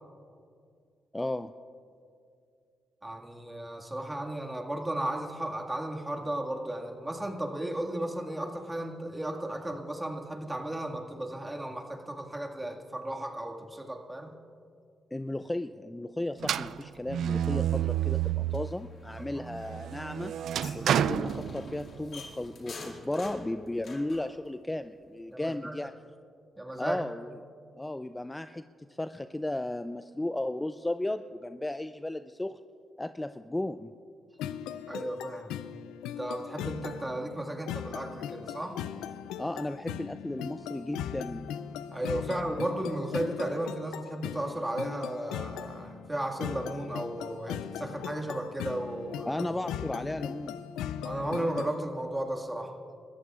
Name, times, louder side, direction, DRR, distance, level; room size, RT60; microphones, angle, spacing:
voice 1, 1.1-1.5 15.1-20.3 20.7-25.9 26.8-27.3 27.8-28.6 29.0-32.6 33.0-33.9 39.4-41.5 49.3-50.6, left 1 dB, 15° left, 11 dB, 0.4 m, -35 dB
voice 2, 3.0-14.3 19.1-19.2 20.8-20.9 25.3-25.7 26.6-27.0 34.9-35.5 36.2-38.8 41.9-49.3 51.0-52.8, right 1 dB, 15° right, 1 dB, 2.0 m, -34 dB
sound 1, 16.4-18.8 19.3-22.1, right 10 dB, 70° right, 0.3 m, -30 dB
sound 2, 17.7-24.3, left 3 dB, 60° left, 2.1 m, -47 dB
sound 3, 34.4-51.8, left 9 dB, 85° left, 0.4 m, -39 dB
29.5 x 14.0 x 2.5 m, 2.4 s
supercardioid pair, 55°, 0 cm